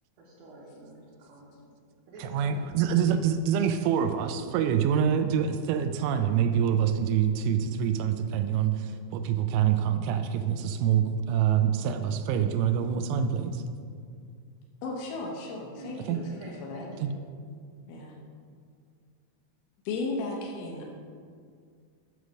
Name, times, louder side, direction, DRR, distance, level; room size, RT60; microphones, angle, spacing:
voice 1, 0.2-1.6 2.1-2.6 4.1-4.5 15.7-17.1, right 2 dB, 70° right, -9 dB, 2.5 m, -47 dB
voice 2, 2.2-13.6 16.1-16.2 17.0-17.1, right 8 dB, 90° right, 8 dB, 3.0 m, -26 dB
voice 3, 14.8-16.9 17.9-18.1 19.9-20.9, left 3 dB, 80° left, -1 dB, 2.3 m, -35 dB
9.2 x 3.2 x 6.2 m, 2.1 s
omnidirectional pair, 5.4 m